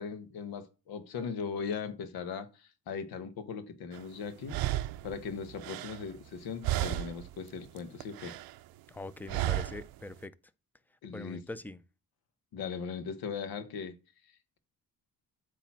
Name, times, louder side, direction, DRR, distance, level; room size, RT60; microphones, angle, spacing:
voice 1, 0.0-4.6 5.0-8.4 11.0-11.4 12.5-14.0, left 6 dB, 85° left, 1.2 m, -39 dB
sound 1, 3.9-4.0 4.5-6.4 6.6-7.3 7.7-8.6 9.3-9.9, right 14 dB, 85° right, 0.5 m, -33 dB
voice 2, 8.9-10.3 11.1-11.8, left 2 dB, 5° left, 0.5 m, -42 dB
8.3 x 3.1 x 5.9 m
cardioid pair, 105°, 35 cm